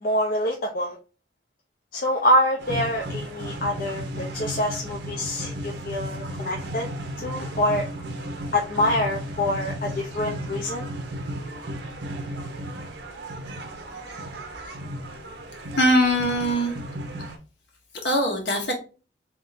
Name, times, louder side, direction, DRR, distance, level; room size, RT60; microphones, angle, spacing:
voice 1, 0.0-1.0 1.9-6.9 7.2-7.9 8.5-10.9, left 1 dB, 50° left, 0 dB, 0.7 m, -25 dB
sound 1, 2.6-17.4, right 1 dB, 75° right, 0.9 m, -34 dB
voice 2, 15.8-16.7 18.0-18.7, equal, 70° left, 0 dB, 1.6 m, -21 dB
3.8 x 3.6 x 2.7 m, 0.34 s
head